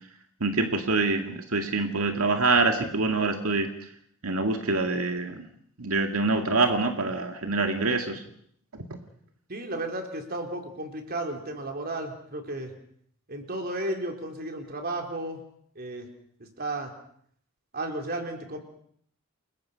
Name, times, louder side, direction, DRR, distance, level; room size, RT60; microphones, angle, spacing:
voice 1, 0.4-3.7 4.2-5.4 5.8-8.2, right 3 dB, 85° right, 4 dB, 2.1 m, -25 dB
voice 2, 9.5-12.7 13.3-15.4 15.8-16.1 16.4-16.9 17.7-18.6, right 1 dB, 45° right, 3 dB, 4.0 m, -33 dB
29.5 x 22.0 x 5.8 m, 0.65 s
head